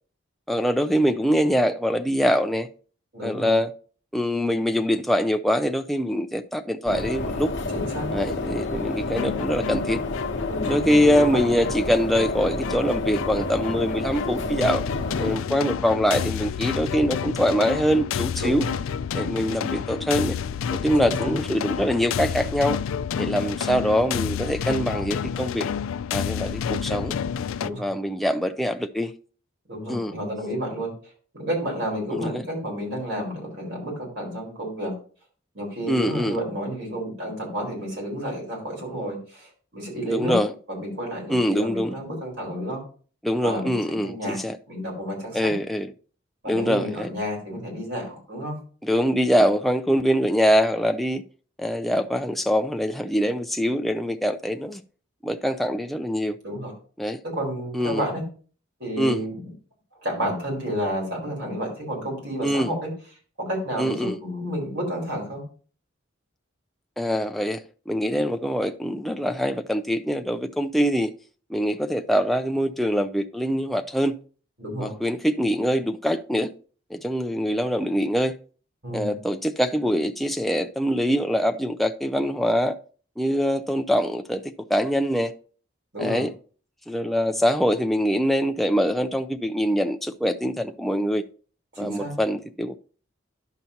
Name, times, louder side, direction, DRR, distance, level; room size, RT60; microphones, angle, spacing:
voice 1, 0.5-2.7 3.2-3.7 4.1-7.5 8.1-10.0 10.7-14.8 15.2-18.7 19.1-20.4 20.7-22.8 23.2-25.7 26.1-27.2 27.8-29.1 29.9-30.1 32.1-32.4 35.9-36.4 40.0-40.5 41.3-42.0 43.2-44.6 45.3-45.9 46.5-47.1 48.8-51.2 51.6-54.8 55.2-56.4 57.0-57.2 57.7-58.0 59.0-59.2 62.4-62.7 63.8-64.2 67.0-71.1 71.5-74.2 74.8-76.5 76.9-78.4 78.9-82.7 83.2-85.3 86.0-86.3 86.9-91.2 91.8-92.7, equal, ahead, 0.3 m, -24 dB
voice 2, 3.1-3.6 7.7-8.1 10.5-11.4 18.4-18.8 21.0-21.3 27.6-27.9 29.7-30.9 31.3-34.9 35.5-40.4 40.7-42.8 43.4-45.5 46.4-48.6 56.4-56.7 57.2-58.2 58.8-59.3 60.0-62.9 63.4-65.4 74.6-74.9 78.8-79.2 85.9-86.2 91.7-92.1, equal, 55° right, 4.4 m, -31 dB
sound 1, 6.9-15.4, left 2 dB, 60° left, 1.0 m, -29 dB
sound 2, 9.1-27.7, left 7 dB, 80° left, 0.3 m, -30 dB
10.5 x 7.0 x 2.8 m
head